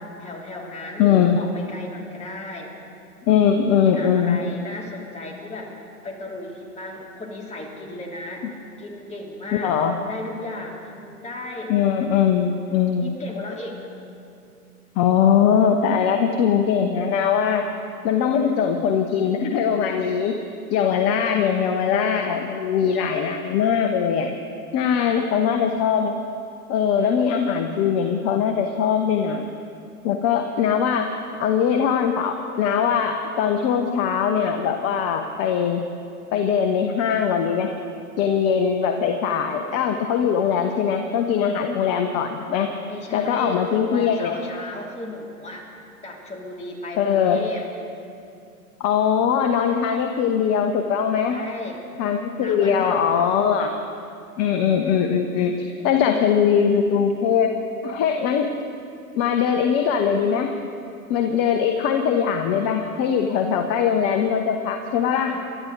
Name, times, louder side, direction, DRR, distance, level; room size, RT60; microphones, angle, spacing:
voice 1, 0.0-2.7 3.7-8.5 8.8-11.7 13.0-13.8 25.1-25.3 42.8-45.6 46.0-47.7 51.3-51.8 52.4-53.3 65.1-65.4, left 2 dB, 15° left, -2 dB, 3.0 m, -35 dB
voice 2, 1.0-1.4 3.3-4.4 9.6-10.0 11.7-13.1 15.0-17.6 18.0-20.4 20.7-24.3 24.7-26.1 26.7-29.4 30.0-31.1 31.4-35.8 36.3-37.7 38.2-42.7 43.1-44.3 47.0-47.5 48.8-51.4 52.0-53.7 54.4-55.5 55.8-57.5 57.8-58.5 59.1-60.6 61.1-65.3, left 7 dB, 35° left, 5 dB, 1.0 m, -21 dB
28.0 x 12.0 x 4.0 m, 2.6 s
hypercardioid pair, 110°, 46 cm